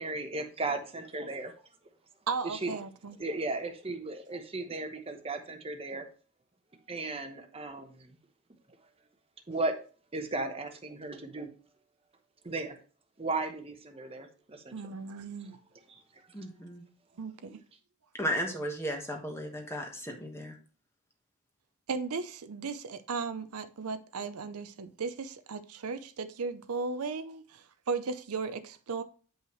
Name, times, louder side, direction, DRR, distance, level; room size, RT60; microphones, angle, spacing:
voice 1, 0.0-1.5 2.4-2.8 3.2-6.1 6.9-7.9 9.5-9.7 10.1-11.5 12.4-12.8 13.2-15.0 17.5-17.6, right 2 dB, 25° right, 1.0 m, -35 dB
voice 2, 2.3-3.2 14.7-15.6 17.2-17.6 21.9-29.0, right 4 dB, 80° right, 0.6 m, -36 dB
voice 3, 16.3-16.8 18.1-20.6, equal, 10° left, 1.3 m, -35 dB
8.9 x 5.5 x 3.1 m
head